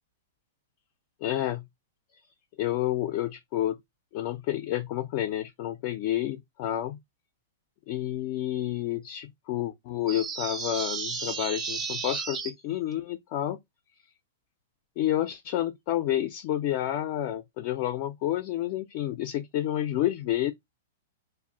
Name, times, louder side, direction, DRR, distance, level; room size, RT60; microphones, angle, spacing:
voice 1, 1.2-1.7 2.6-3.8 4.1-7.0 7.9-13.6 15.0-20.5, left 13 dB, 45° left, 0.3 m, -29 dB
sound 1, 10.1-12.5, right 5 dB, 20° right, 0.4 m, -33 dB
2.1 x 2.0 x 3.7 m
hypercardioid pair, 140°, 0 cm